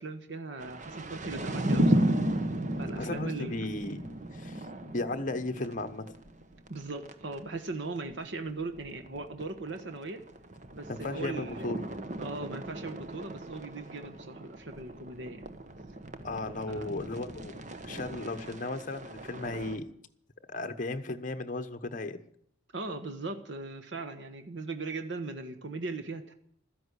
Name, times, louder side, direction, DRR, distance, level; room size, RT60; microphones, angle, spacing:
voice 1, 0.0-2.1 2.8-3.5 6.7-10.2 10.7-11.7 12.2-15.5 16.7-17.0 22.7-26.3, right 3 dB, 70° right, 7 dB, 1.5 m, -39 dB
sound 1, 0.6-7.4 7.6-7.7 8.0-8.1 8.4-19.8, right 1 dB, 40° right, 1.2 m, -35 dB
voice 2, 3.0-4.0 4.3-6.1 10.9-11.9 16.2-17.6 17.8-19.8 20.5-22.2, left 2 dB, 45° left, 8 dB, 1.1 m, -35 dB
13.5 x 10.5 x 8.2 m, 0.66 s
head